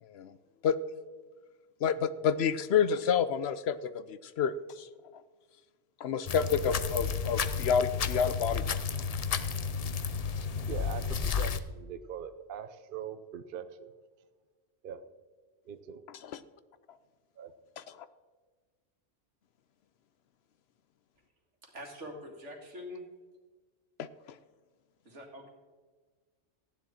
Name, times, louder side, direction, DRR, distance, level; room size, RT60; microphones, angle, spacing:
voice 1, 0.0-0.3 0.6-0.8 1.8-4.9 5.1-5.2 6.0-8.8 16.2-16.4 17.8-18.1 24.0-24.1, left 7 dB, 70° left, 14 dB, 0.8 m, -29 dB
sound 1, 6.3-11.6, left 6 dB, 50° left, 0.5 m, -32 dB
voice 2, 10.7-13.9 14.8-15.0 15.7-16.0 17.4-17.5, right 8 dB, 55° right, 10 dB, 0.8 m, -42 dB
voice 3, 21.6-23.1 25.0-25.5, left 1 dB, 80° right, 1 dB, 2.4 m, -44 dB
15.0 x 9.9 x 4.3 m, 1.4 s
omnidirectional pair, 1.2 m